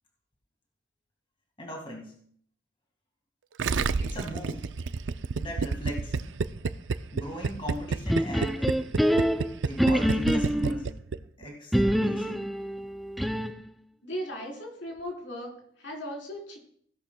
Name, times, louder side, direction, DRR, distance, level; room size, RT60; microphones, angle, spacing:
voice 1, 1.6-2.1 3.9-4.7 5.3-6.1 7.1-8.7 9.6-10.9 11.4-12.4, equal, 30° left, 0 dB, 2.0 m, -38 dB
Gurgling, 3.6-11.4, right 4 dB, 85° right, 0.5 m, -29 dB
sound 1, 8.1-10.8 11.7-13.7, equal, ahead, 0.3 m, -26 dB
voice 2, 14.0-16.6, equal, 80° left, -1 dB, 4.0 m, -37 dB
16.5 x 11.0 x 2.3 m, 0.62 s
head